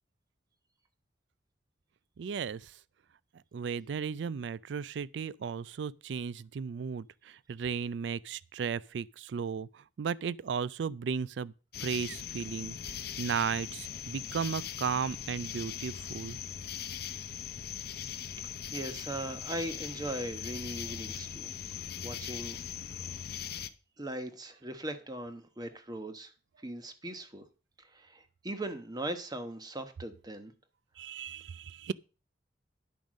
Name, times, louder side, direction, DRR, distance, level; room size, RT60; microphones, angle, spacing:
voice 1, 2.2-2.6 3.5-9.7 10.0-11.5 11.8-16.4 31.0-31.9, right 6 dB, 75° right, 0.4 m, -35 dB
sound 1, 11.7-23.7, left 9 dB, 55° left, 0.7 m, -40 dB
voice 2, 18.4-21.5 22.0-22.6 22.9-23.0 24.0-26.3 26.6-27.5 27.8-30.5, right 1 dB, 20° right, 1.1 m, -39 dB
10.5 x 5.2 x 6.3 m
head